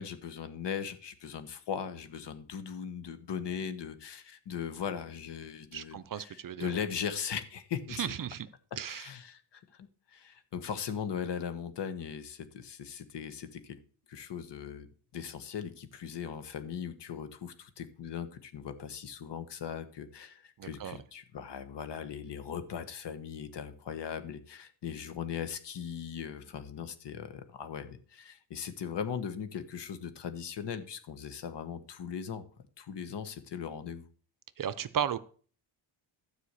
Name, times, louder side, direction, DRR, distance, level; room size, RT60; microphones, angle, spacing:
voice 1, 0.0-8.1 8.9-9.6 10.1-13.8 14.1-14.9 15.1-32.4 32.8-34.1, left 7 dB, 60° left, 10 dB, 1.4 m, -39 dB
voice 2, 5.7-6.7 8.0-8.5 8.8-9.1 20.6-21.0 34.6-35.2, right 8 dB, 45° right, 14 dB, 0.7 m, -35 dB
13.0 x 4.9 x 8.3 m, 0.43 s
cardioid pair, 140°, 47 cm